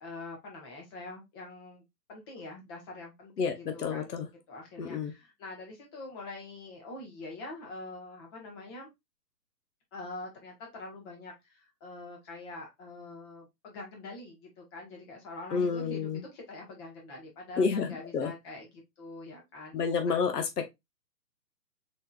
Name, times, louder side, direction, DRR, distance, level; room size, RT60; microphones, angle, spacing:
voice 1, 0.0-4.2 4.5-8.9 9.9-19.8 20.1-20.2, left 2 dB, 15° left, 0.9 m, -44 dB
voice 2, 3.4-4.3 4.8-5.1 15.5-16.2 17.6-18.3 19.7-20.7, left 5 dB, 70° left, 1.1 m, -30 dB
4.3 x 3.6 x 2.2 m
figure-of-eight pair, 140°, 50 cm